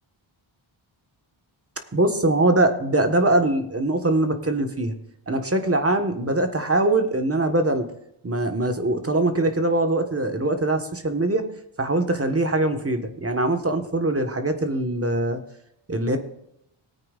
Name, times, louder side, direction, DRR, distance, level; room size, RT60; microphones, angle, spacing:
voice 1, 1.9-4.9 5.3-7.8 8.2-11.4 11.8-15.4 15.9-16.2, right 2 dB, 30° right, 6 dB, 1.4 m, -22 dB
19.5 x 8.8 x 2.5 m, 0.77 s
wide cardioid pair, 80°, 49 cm